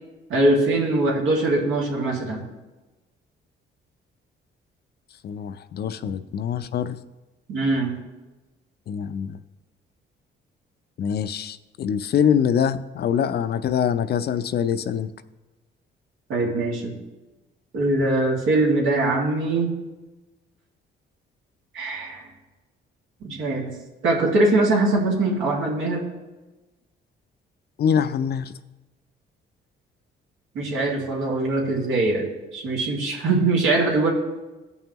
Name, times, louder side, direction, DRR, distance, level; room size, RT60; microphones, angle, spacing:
voice 1, 0.3-2.4 7.5-8.0 16.3-17.0 17.7-19.7 21.7-22.3 23.2-23.7 24.0-26.0 30.5-34.1, right 2 dB, 85° right, -2 dB, 2.1 m, -22 dB
voice 2, 5.2-7.0 8.9-9.4 11.0-15.1 27.8-28.5, left 8 dB, 55° left, 12 dB, 0.5 m, -24 dB
16.0 x 5.5 x 3.0 m, 1.1 s
cardioid pair, 90°, 20 cm